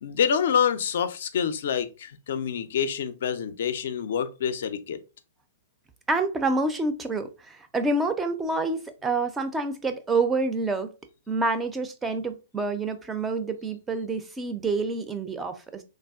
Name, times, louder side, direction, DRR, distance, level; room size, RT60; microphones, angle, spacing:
voice 1, 0.0-5.0, left 7 dB, 55° left, 0.3 m, -27 dB
voice 2, 6.1-10.9 11.3-15.8, right 3 dB, 10° right, 0.4 m, -27 dB
3.2 x 2.3 x 2.3 m
figure-of-eight pair, 110°, 0 cm